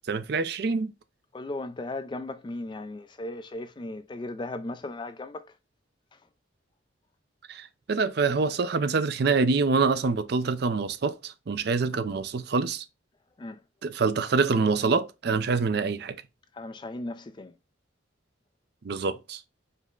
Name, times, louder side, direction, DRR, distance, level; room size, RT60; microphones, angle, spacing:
voice 1, 0.1-0.9 7.5-12.8 13.8-16.2 18.8-19.4, right 4 dB, 55° right, 0.4 m, -26 dB
voice 2, 1.3-5.5 6.1-6.2 13.4-13.6 16.5-17.5, left 2 dB, 25° left, 0.3 m, -36 dB
5.1 x 2.1 x 3.6 m
head